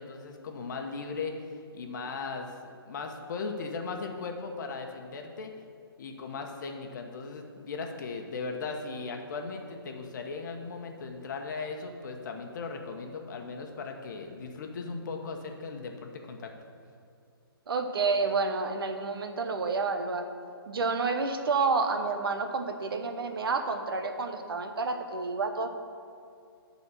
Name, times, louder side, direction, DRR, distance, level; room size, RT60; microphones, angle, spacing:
voice 1, 0.0-5.5 6.0-16.5, left 4 dB, 50° left, 3 dB, 1.1 m, -38 dB
voice 2, 17.7-20.3 20.7-25.7, right 4 dB, 65° right, 6 dB, 1.0 m, -29 dB
12.5 x 4.2 x 7.4 m, 2.4 s
hypercardioid pair, 160°, 13 cm